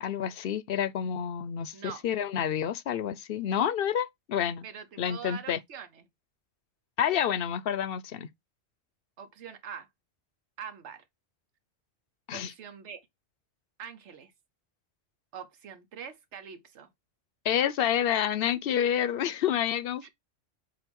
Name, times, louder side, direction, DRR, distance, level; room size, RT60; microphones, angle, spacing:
voice 1, 0.0-4.7 5.0-5.6 7.0-8.3 12.3-12.5 17.4-20.1, left 9 dB, 65° left, 0.8 m, -29 dB
voice 2, 1.7-2.0 4.6-6.0 9.2-9.9 10.6-11.0 12.3-13.0 13.8-14.3 15.3-16.9 20.0-20.1, right 8 dB, 85° right, 1.2 m, -43 dB
7.7 x 2.6 x 5.2 m
omnidirectional pair, 1.1 m